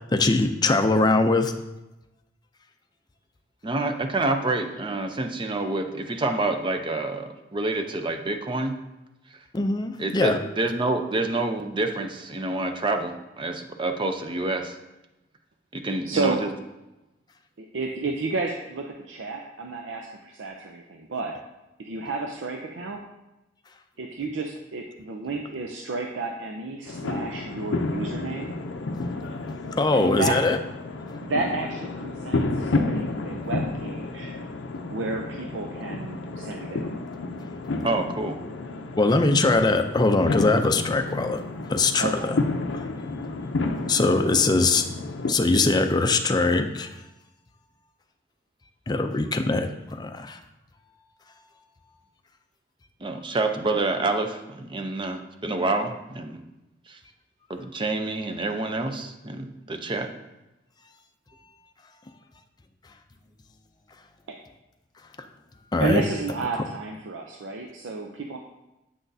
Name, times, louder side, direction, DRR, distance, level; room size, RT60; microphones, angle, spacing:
voice 1, 0.1-1.5 9.5-10.4 29.8-30.6 39.0-41.4 41.7-42.4 42.7-42.9 43.9-44.9 45.3-46.9 48.9-50.4 65.7-66.0, left 3 dB, 20° left, 6 dB, 0.4 m, -22 dB
voice 2, 3.6-8.7 10.0-14.8 15.7-16.5 37.8-38.4 53.0-56.4 56.9-57.0 57.5-60.1, right 2 dB, 25° right, 6 dB, 0.5 m, -27 dB
voice 3, 16.0-16.4 17.6-21.3 21.8-23.0 24.0-28.5 29.9-30.4 31.2-34.3 34.9-36.9 42.0-42.3 65.8-68.4, right 3 dB, 85° right, 2 dB, 0.5 m, -31 dB
sound 1, 26.8-45.3, left 2 dB, 75° left, 0.5 m, -31 dB
7.7 x 6.0 x 2.7 m, 0.98 s
head